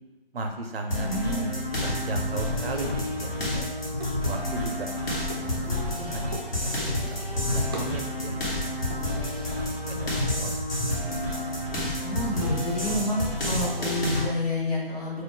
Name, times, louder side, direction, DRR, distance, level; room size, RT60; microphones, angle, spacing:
voice 1, 0.3-4.9 5.3-6.4 6.7-9.0 9.6-10.9, right 2 dB, 70° right, 4 dB, 0.5 m, -36 dB
sound 1, 0.9-14.2, left 1 dB, 65° left, 1.2 m, -29 dB
voice 2, 1.0-1.5 12.0-15.2, left 1 dB, 40° left, -6 dB, 1.1 m, -29 dB
sound 2, 1.5-14.0, right 2 dB, 25° right, 0.4 m, -47 dB
2.4 x 2.1 x 3.7 m, 1.2 s
figure-of-eight pair, 150°, 31 cm